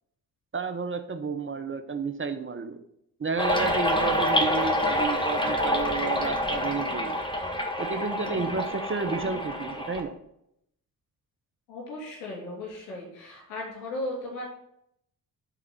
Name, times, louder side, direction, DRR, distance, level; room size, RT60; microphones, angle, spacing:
voice 1, 0.5-2.8 3.2-7.2 7.8-10.1, right 4 dB, 25° right, 8 dB, 0.8 m, -31 dB
sound 1, 3.4-10.0, equal, 10° left, 1.5 m, -27 dB
voice 2, 11.7-14.4, left 1 dB, 80° left, -2 dB, 2.9 m, -36 dB
11.5 x 4.0 x 4.4 m, 0.76 s
hypercardioid pair, 45°, 47 cm